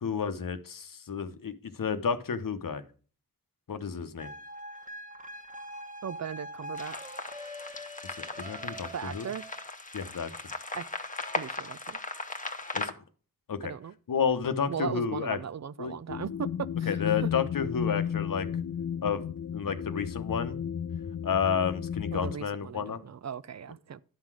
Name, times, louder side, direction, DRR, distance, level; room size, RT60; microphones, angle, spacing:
voice 1, 0.0-2.8 3.7-4.3 8.0-9.3 9.9-10.3 12.7-12.9 13.5-13.7 14.1-15.4 15.8-15.9 16.9-18.5 19.0-19.2 19.5-20.6 21.2-23.0, left 6 dB, 65° left, 0.9 m, -31 dB
sound 1, 4.2-9.7, equal, 20° right, 1.3 m, -43 dB
voice 2, 6.0-7.0 8.9-9.4 10.7-10.8 11.3-12.0 13.6-13.9 14.7-17.0 22.1-24.0, right 7 dB, 50° right, 0.5 m, -37 dB
sound 2, 6.7-12.9, left 2 dB, 20° left, 1.0 m, -38 dB
sound 3, 16.1-22.4, left 9 dB, 50° left, 0.5 m, -33 dB
10.5 x 3.9 x 6.0 m
cardioid pair, 45°, 35 cm